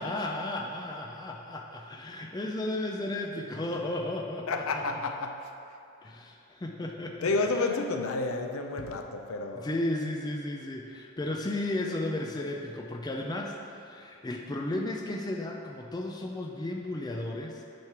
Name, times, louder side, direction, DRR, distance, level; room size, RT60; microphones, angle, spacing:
voice 1, 0.0-5.0 6.0-7.8 9.5-17.6, left 1 dB, 20° left, 0 dB, 0.4 m, -34 dB
voice 2, 4.5-5.5 7.2-9.7, left 3 dB, 70° left, 5 dB, 0.5 m, -30 dB
8.7 x 3.2 x 5.9 m, 2.6 s
head